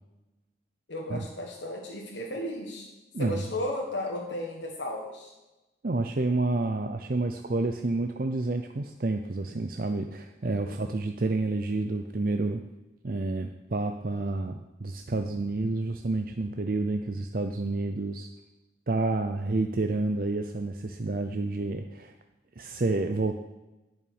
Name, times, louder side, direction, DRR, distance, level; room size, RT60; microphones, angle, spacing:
voice 1, 0.9-2.9 3.2-5.3 10.7-11.0, left 1 dB, 85° left, 0 dB, 1.6 m, -34 dB
voice 2, 3.1-3.5 5.8-12.6 13.0-18.3 18.9-22.1 22.6-23.4, right 2 dB, 50° right, 5 dB, 0.6 m, -29 dB
11.0 x 5.7 x 8.8 m, 1.0 s
head